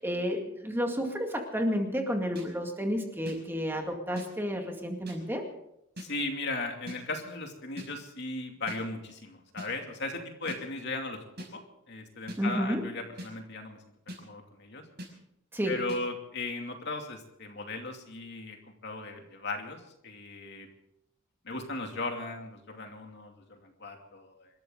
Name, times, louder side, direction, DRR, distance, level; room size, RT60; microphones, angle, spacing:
voice 1, 0.0-5.4 12.4-12.9 15.5-15.8, equal, 10° right, 2 dB, 2.1 m, -31 dB
sound 1, 2.4-2.5 3.3-3.4 4.2-4.3 5.1-5.2 6.0-6.1 6.9-7.0 7.8-7.9 8.7-8.8 9.6-9.7 10.5-10.6 11.4-11.5 12.3-12.4 13.2-13.3 14.1-14.2 15.0-15.1 15.9-16.0, equal, 55° right, 5.9 m, -41 dB
voice 2, 6.0-11.2 11.5-11.6 11.9-13.8 14.1-14.8 15.7-18.6 18.8-20.7 21.4-24.5, left 2 dB, 55° left, 3 dB, 2.7 m, -37 dB
27.0 x 13.5 x 3.9 m, 0.79 s
head